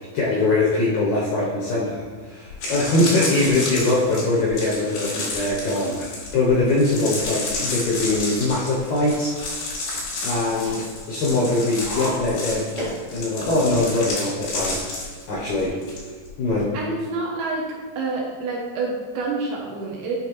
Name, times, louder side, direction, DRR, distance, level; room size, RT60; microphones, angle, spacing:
voice 1, 0.1-9.8 10.2-12.7 13.1-14.8 15.3-15.7 16.4-16.7, left 2 dB, 70° left, -6 dB, 1.8 m, -22 dB
sound 1, 2.5-16.0 16.3-16.6, left 2 dB, 90° left, 4.0 m, -31 dB
sound 2, 6.3-14.0, equal, 45° right, 0.8 m, -39 dB
voice 2, 15.7-16.1 16.7-17.7 18.0-20.2, right 3 dB, 75° right, -2 dB, 2.2 m, -28 dB
8.2 x 3.8 x 3.0 m, 1.4 s
omnidirectional pair, 4.3 m